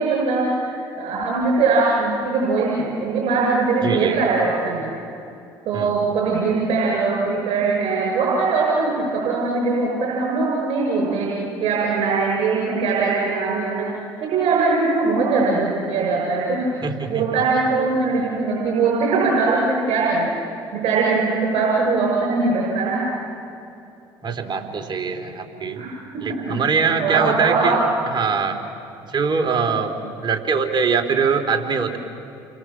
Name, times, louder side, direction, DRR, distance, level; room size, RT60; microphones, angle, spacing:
voice 1, 0.0-4.9 5.7-13.9 14.2-16.7 17.1-20.3 20.8-23.0 25.8-25.9 26.1-27.9, right 4 dB, 60° right, -3 dB, 7.2 m, -21 dB
voice 2, 3.8-4.2 5.7-6.0 16.8-17.2 24.2-25.8 26.2-27.8 28.1-28.6 29.0-29.9 30.2-32.0, right 5 dB, 40° right, 5 dB, 3.3 m, -22 dB
29.5 x 24.0 x 7.3 m, 2.6 s
hypercardioid pair, 60°, 12 cm